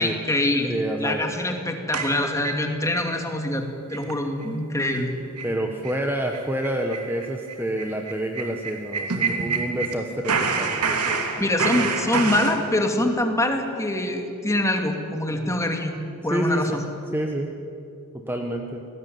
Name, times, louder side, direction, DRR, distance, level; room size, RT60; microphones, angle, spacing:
voice 1, 0.0-0.7 1.0-3.6 3.9-5.1 11.4-15.9 16.2-16.9, left 1 dB, 15° left, 4 dB, 2.4 m, -24 dB
voice 2, 0.7-1.3 5.4-11.3 16.3-16.8 17.1-17.5 18.1-18.8, right 1 dB, 10° right, 3 dB, 1.3 m, -28 dB
sound 1, 1.9-3.1 3.4-3.5 3.9-4.1 4.4-4.5 4.9-5.0 5.4-5.5 5.8-6.0 6.3-10.0 10.2-12.6, right 4 dB, 85° right, 2.9 m, -27 dB
28.5 x 19.0 x 9.5 m, 2.9 s
head